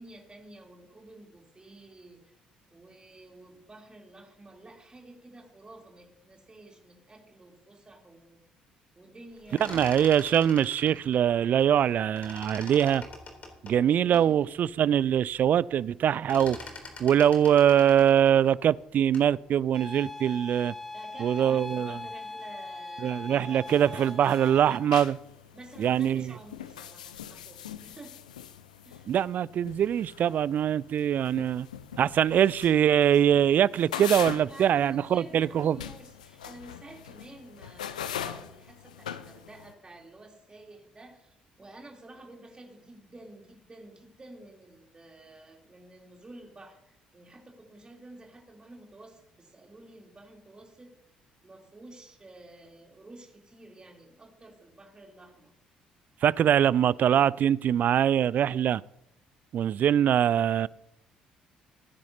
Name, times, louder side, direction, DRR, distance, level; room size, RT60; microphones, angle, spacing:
voice 1, 0.0-2.3 2.7-8.4 8.9-9.9 13.8-14.6 20.9-24.2 25.5-28.2 28.8-29.1 34.2-50.9 51.4-55.5, right 2 dB, 25° right, 3.4 m, -50 dB
sound 1, 9.3-11.9 12.2-14.3 14.8-14.9 15.2-15.6 15.8-19.4, left 3 dB, 35° left, 3.3 m, -45 dB
voice 2, 9.7-13.0 13.6-16.6 17.0-20.7 21.2-22.0 23.0-25.2 25.8-26.3 29.1-31.7 32.0-35.8 56.2-58.8 59.5-60.7, right 9 dB, 45° right, 0.3 m, -23 dB
sound 2, 19.7-24.8, left 2 dB, 5° left, 2.4 m, -40 dB
sound 3, 23.6-39.7, left 9 dB, 80° left, 0.6 m, -42 dB
20.0 x 10.5 x 2.8 m
figure-of-eight pair, 50°, 4 cm